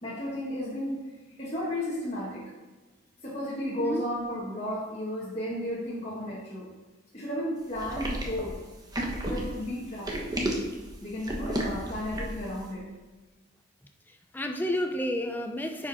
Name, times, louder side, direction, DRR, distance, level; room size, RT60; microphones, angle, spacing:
voice 1, 0.0-2.5 3.2-6.7 7.1-8.6 9.2-10.4 11.0-12.9, left 1 dB, 30° left, -7 dB, 1.6 m, -34 dB
sound 1, 7.8-12.5, right 1 dB, 20° right, 1.1 m, -32 dB
voice 2, 14.1-15.9, left 1 dB, 10° left, 4 dB, 0.4 m, -31 dB
10.0 x 5.1 x 4.1 m, 1.2 s
head